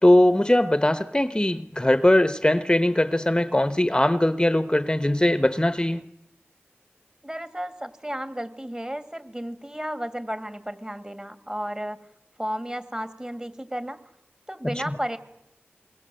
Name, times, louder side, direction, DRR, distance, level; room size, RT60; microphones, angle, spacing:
voice 1, 0.0-6.0 14.6-15.0, left 1 dB, 20° left, 1.0 m, -20 dB
voice 2, 7.2-12.0 12.4-14.0 14.5-15.2, equal, 20° right, 2.6 m, -33 dB
28.0 x 22.0 x 7.8 m
wide cardioid pair, 45°, 4 cm